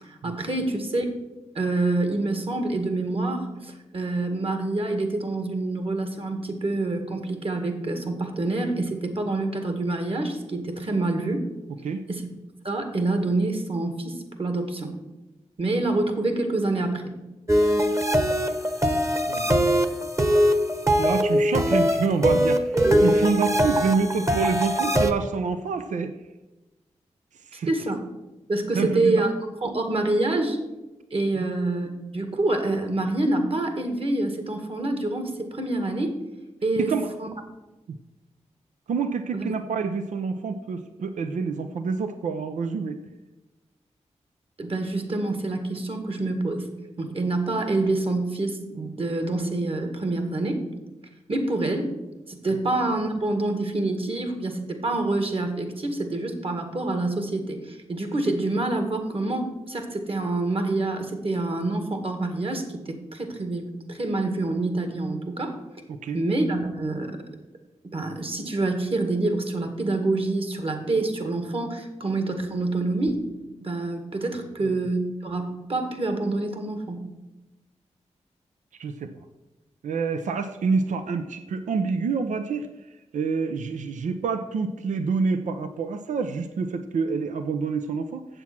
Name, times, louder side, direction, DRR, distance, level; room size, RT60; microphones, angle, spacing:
voice 1, 0.1-1.1 1.6-11.4 12.1-12.2 12.6-14.9 15.6-17.0 27.7-28.1 28.5-29.3 29.6-30.6 31.1-36.1 36.6-36.9 37.2-37.3 39.3-39.4 44.6-46.7 47.0-50.6 51.3-52.0 52.3-65.6 66.1-67.2 67.8-73.3 73.6-77.0, right 2 dB, 50° right, 6 dB, 1.8 m, -26 dB
sound 1, 17.5-25.1, equal, 25° right, 1.1 m, -22 dB
voice 2, 19.3-19.8 21.0-26.1 27.5-27.7 28.7-29.2 31.3-31.5 36.8-37.1 38.9-43.0 52.5-52.6 65.9-66.2 74.6-74.7 78.8-79.1 79.8-82.7 83.1-88.4, right 5 dB, 85° right, 9 dB, 0.6 m, -27 dB
7.9 x 7.4 x 5.9 m, 1.0 s
cardioid pair, 45°, 12 cm